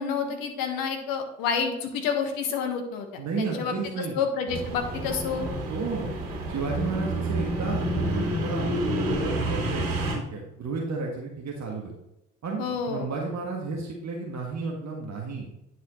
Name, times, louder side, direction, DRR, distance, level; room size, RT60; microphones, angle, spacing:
voice 1, 0.0-3.1 3.4-3.7 4.1-5.5 12.6-13.1, left 6 dB, 65° left, 4 dB, 1.5 m, -29 dB
voice 2, 3.2-4.1 5.7-6.1 6.5-8.1 8.4-11.9 12.4-15.5, right 4 dB, 45° right, -1 dB, 1.7 m, -33 dB
sound 1, 4.5-10.1, right 1 dB, 65° right, 3.0 m, -29 dB
9.7 x 6.5 x 3.1 m, 0.87 s
figure-of-eight pair, 45°, 37 cm